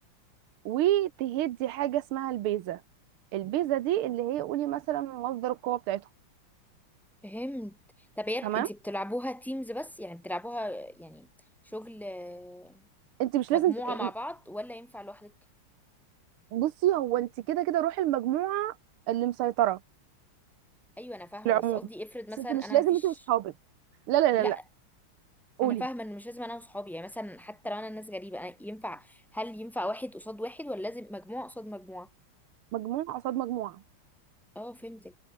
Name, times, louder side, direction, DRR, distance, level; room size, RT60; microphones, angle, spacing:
voice 1, 0.6-2.8 3.3-6.0 8.4-8.7 13.2-14.1 16.5-18.7 19.1-19.8 21.4-21.8 22.4-23.5 24.1-24.6 25.6-25.8 32.7-33.8, right 13 dB, 80° right, 1.7 m, -28 dB
voice 2, 7.2-7.8 8.2-11.3 11.6-12.8 13.5-15.3 21.0-22.8 24.4-24.5 25.6-32.1 34.5-35.1, left 1 dB, ahead, 6.5 m, -37 dB
omnidirectional pair, 2.4 m